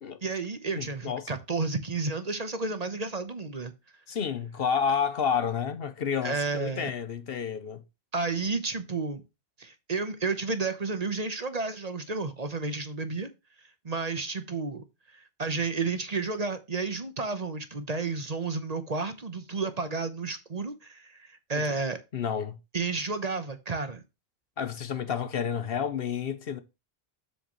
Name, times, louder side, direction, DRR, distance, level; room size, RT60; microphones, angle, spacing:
voice 1, 0.2-3.7 6.2-6.9 8.1-9.2 9.6-13.3 13.8-14.8 15.1-22.0 22.7-24.0, right 4 dB, 40° right, 1.1 m, -31 dB
voice 2, 0.8-1.3 4.1-7.8 21.5-21.7 22.1-22.6 24.6-26.6, left 7 dB, 65° left, 1.0 m, -30 dB
7.7 x 6.7 x 3.1 m
omnidirectional pair, 1.1 m